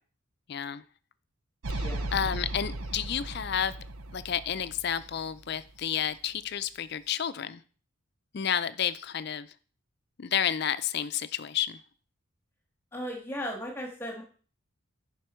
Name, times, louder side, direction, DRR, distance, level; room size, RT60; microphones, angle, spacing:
voice 1, 0.5-0.8 1.7-1.9 2.1-3.8 4.1-7.6 8.3-9.5 10.2-11.8, left 9 dB, 50° left, 14 dB, 0.4 m, -31 dB
sound 1, 1.6-5.9, right 1 dB, 80° right, 0.7 m, -36 dB
voice 2, 1.7-2.1 12.9-14.2, equal, 10° left, 1 dB, 1.6 m, -36 dB
10.5 x 5.3 x 4.4 m, 0.41 s
head